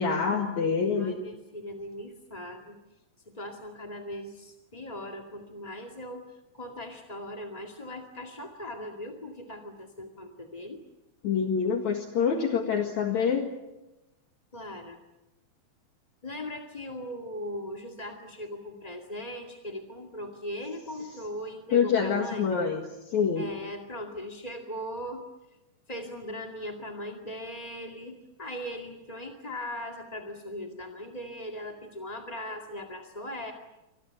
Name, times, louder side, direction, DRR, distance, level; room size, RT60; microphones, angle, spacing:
voice 1, 0.0-1.2 11.2-13.5 21.7-23.5, left 6 dB, 60° left, 3 dB, 3.1 m, -26 dB
voice 2, 1.0-2.8 3.3-10.8 14.5-15.0 16.2-22.4 23.4-25.3 25.9-33.5, left 1 dB, 15° left, 2 dB, 1.6 m, -39 dB
28.5 x 26.0 x 7.1 m, 0.98 s
omnidirectional pair, 3.9 m